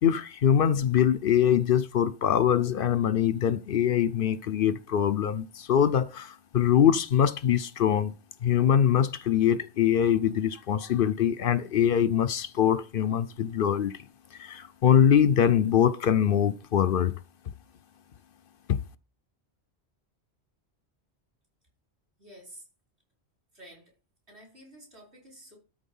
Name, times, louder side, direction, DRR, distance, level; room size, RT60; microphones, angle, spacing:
voice 1, 0.0-8.1 8.4-13.9 14.4-17.1 18.7-18.8, left 9 dB, 60° left, 0.7 m, -23 dB
voice 2, 22.2-22.7 23.5-23.9 24.3-25.6, right 1 dB, 70° right, 5.2 m, -50 dB
13.0 x 4.3 x 5.5 m
omnidirectional pair, 1.2 m